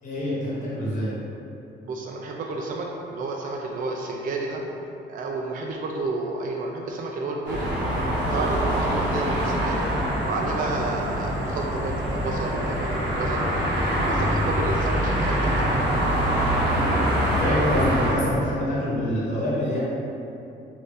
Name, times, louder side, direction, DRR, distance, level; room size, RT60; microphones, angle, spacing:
voice 1, 0.0-1.1 17.4-19.8, left 1 dB, 35° left, -8 dB, 1.3 m, -26 dB
voice 2, 1.8-4.6 5.1-7.7 8.3-9.8 10.2-13.7 14.0-15.7, right 3 dB, 45° right, -1 dB, 0.4 m, -31 dB
sound 1, 7.4-18.1, equal, 65° right, 0.9 m, -24 dB
3.3 x 2.6 x 3.3 m, 2.8 s
cardioid pair, 90°, 20 cm